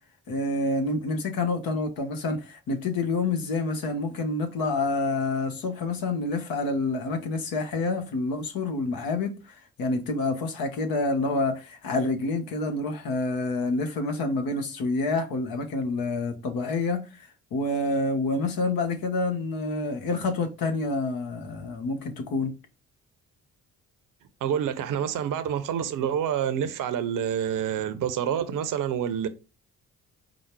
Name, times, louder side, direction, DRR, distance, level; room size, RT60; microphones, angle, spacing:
voice 1, 0.3-22.5, left 3 dB, 70° left, 1.1 m, -28 dB
voice 2, 24.4-29.3, right 9 dB, 60° right, 0.7 m, -27 dB
5.0 x 2.0 x 4.5 m
hypercardioid pair, 50°, 36 cm